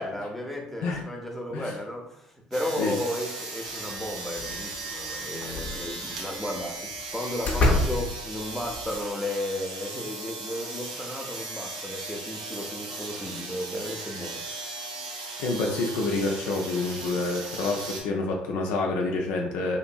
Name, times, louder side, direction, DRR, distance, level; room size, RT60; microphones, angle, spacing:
voice 1, 0.0-14.7, left 1 dB, 5° left, 0 dB, 0.7 m, -34 dB
sound 1, 2.5-18.0, right 3 dB, 90° right, 0.5 m, -37 dB
sound 2, 4.3-4.8 5.4-6.2 7.0-7.1 7.4-9.0, left 2 dB, 45° left, 0.7 m, -27 dB
voice 2, 15.4-19.8, left 3 dB, 70° left, 0 dB, 0.4 m, -28 dB
2.9 x 2.5 x 2.2 m, 0.77 s
hypercardioid pair, 55°, 4 cm